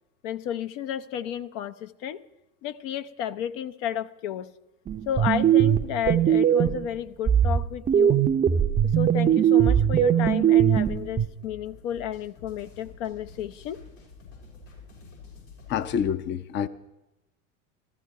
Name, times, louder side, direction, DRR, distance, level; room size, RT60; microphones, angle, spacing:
voice 1, 0.2-2.2 2.6-4.5 5.1-8.2 8.8-13.8, left 10 dB, 65° left, 0.8 m, -32 dB
sound 1, 4.9-6.9 7.3-11.3, right 9 dB, 20° right, 0.5 m, -20 dB
sound 2, 10.5-16.1, left 5 dB, 85° left, 6.6 m, -48 dB
voice 2, 15.7-16.7, left 8 dB, 30° left, 0.6 m, -27 dB
14.5 x 14.0 x 4.7 m
hypercardioid pair, 90°, 38 cm